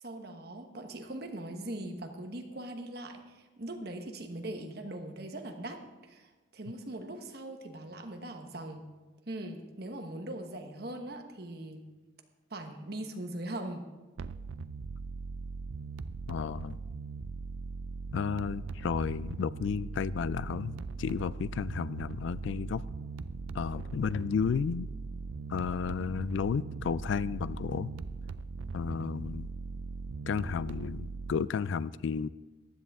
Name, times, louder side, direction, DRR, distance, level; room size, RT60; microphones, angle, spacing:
voice 1, 0.0-8.8 9.3-11.9 12.5-13.8, right 1 dB, 50° right, 5 dB, 1.2 m, -41 dB
sound 1, 14.2-31.5, right 4 dB, 80° right, 0.4 m, -40 dB
voice 2, 16.3-16.8 18.1-22.9 23.5-24.9 25.5-27.9 28.7-29.5 30.3-32.3, left 6 dB, 70° left, 18 dB, 0.3 m, -32 dB
15.0 x 10.5 x 3.6 m, 1.2 s
head